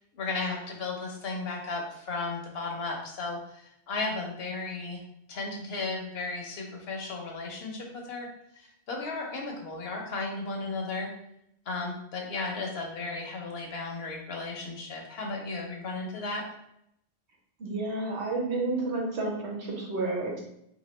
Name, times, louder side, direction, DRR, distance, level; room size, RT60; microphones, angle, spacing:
voice 1, 0.1-5.0 5.3-11.1 11.7-16.5, left 3 dB, 70° left, 1 dB, 1.0 m, -35 dB
voice 2, 17.6-20.4, right 2 dB, 85° right, -1 dB, 1.2 m, -30 dB
3.2 x 2.9 x 3.2 m, 0.76 s
omnidirectional pair, 1.1 m